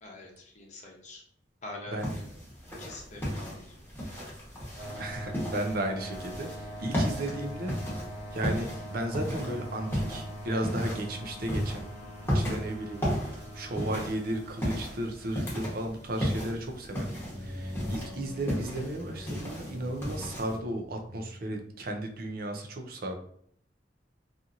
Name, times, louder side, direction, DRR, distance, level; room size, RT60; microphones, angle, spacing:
voice 1, 0.0-1.2 1.6-2.3 2.8-3.8, left 2 dB, 45° left, -1 dB, 0.8 m, -45 dB
sound 1, 2.0-20.6, equal, 15° left, 1.1 m, -35 dB
sound 2, 4.8-16.2, equal, 70° right, 1.0 m, -43 dB
voice 2, 5.0-7.8 8.3-11.8 12.3-17.1 17.4-23.2, right 1 dB, 55° right, 4 dB, 0.5 m, -34 dB
sound 3, 16.8-21.3, left 1 dB, 10° right, 0.9 m, -43 dB
2.8 x 2.5 x 2.5 m, 0.65 s
head